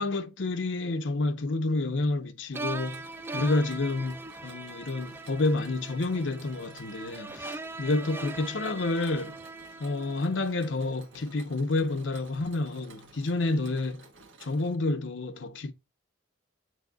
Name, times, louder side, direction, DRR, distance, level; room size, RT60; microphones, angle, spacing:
voice 1, 0.0-9.4 9.8-14.1 14.4-15.7, left 2 dB, 75° left, 0.8 m, -29 dB
sound 1, 2.5-10.7, right 3 dB, 10° right, 0.3 m, -41 dB
Mechanisms, 2.5-14.8, right 3 dB, 85° right, 1.4 m, -54 dB
8.0 x 6.4 x 2.3 m
head